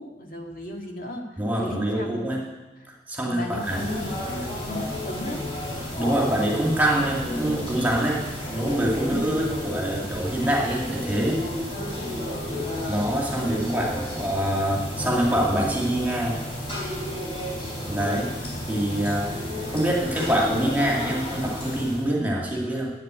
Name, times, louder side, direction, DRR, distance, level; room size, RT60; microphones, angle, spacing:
voice 1, 0.0-1.2 1.6-2.3 3.2-5.4 11.7-12.2, left 1 dB, 50° left, 1 dB, 2.1 m, -35 dB
voice 2, 1.4-2.4 3.1-3.9 6.0-8.2 8.5-11.4 12.9-16.4 17.7-18.3 18.7-19.3 19.7-22.9, right 1 dB, 10° right, -3 dB, 2.2 m, -25 dB
sound 1, 3.5-22.1, left 1 dB, 30° left, 3.8 m, -32 dB
11.0 x 8.6 x 9.0 m, 1.2 s
head